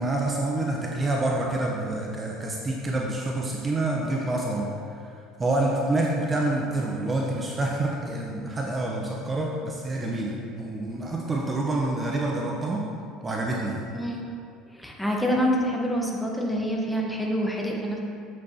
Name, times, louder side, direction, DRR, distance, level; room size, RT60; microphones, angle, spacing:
voice 1, 0.0-4.7 5.4-12.8 13.2-13.8, right 2 dB, 25° right, -2 dB, 0.8 m, -27 dB
voice 2, 13.9-14.2 14.7-18.0, equal, 5° left, -1 dB, 1.3 m, -26 dB
7.6 x 7.5 x 2.9 m, 2.4 s
figure-of-eight pair, 65°, 0 cm